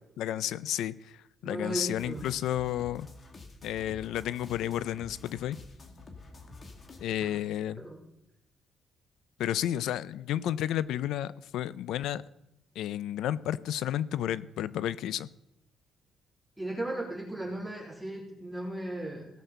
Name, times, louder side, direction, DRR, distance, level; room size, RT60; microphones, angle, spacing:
voice 1, 0.2-3.1 3.6-5.6 7.0-7.8 9.4-12.2 12.8-15.3, left 11 dB, 85° left, 18 dB, 0.5 m, -32 dB
voice 2, 1.4-2.3 7.2-7.4 7.8-8.0 16.6-19.3, right 1 dB, 5° right, -4 dB, 3.7 m, -36 dB
sound 1, 2.0-7.0, left 3 dB, 40° left, 2.2 m, -49 dB
17.5 x 6.4 x 6.8 m, 0.84 s
cardioid pair, 110°, 0 cm